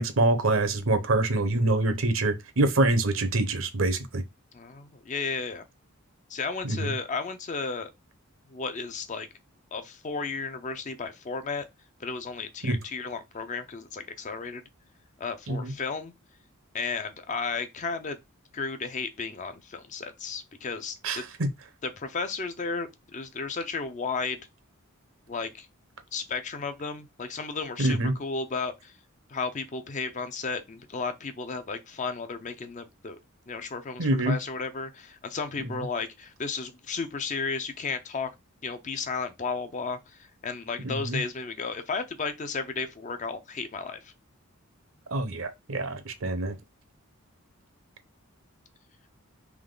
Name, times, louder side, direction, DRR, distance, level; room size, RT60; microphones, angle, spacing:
voice 1, 0.0-4.2 6.6-6.9 12.6-12.8 15.5-15.7 21.0-21.5 27.8-28.1 34.0-34.4 35.7-35.8 40.8-41.2 45.1-46.6, right 2 dB, 65° right, 0.8 m, -25 dB
voice 2, 4.5-5.6 6.3-7.9 8.5-9.3 9.7-11.7 12.0-14.6 15.2-16.1 16.7-18.2 18.5-21.0 21.8-24.4 25.3-25.7 26.1-28.9 29.3-33.2 33.5-38.3 38.6-44.1, left 4 dB, 35° left, 0.5 m, -33 dB
3.5 x 3.1 x 3.8 m
head